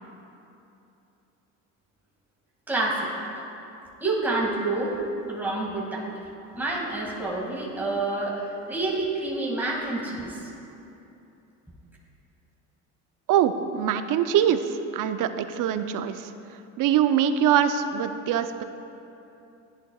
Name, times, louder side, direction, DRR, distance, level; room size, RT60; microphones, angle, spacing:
voice 1, 2.7-3.1 4.0-4.9 5.3-6.1 6.6-10.4, right 2 dB, 5° right, -4 dB, 2.2 m, -28 dB
voice 2, 13.3-16.3 16.8-18.6, right 9 dB, 60° right, 9 dB, 0.7 m, -23 dB
14.0 x 10.0 x 2.4 m, 2.9 s
supercardioid pair, 80°, 37 cm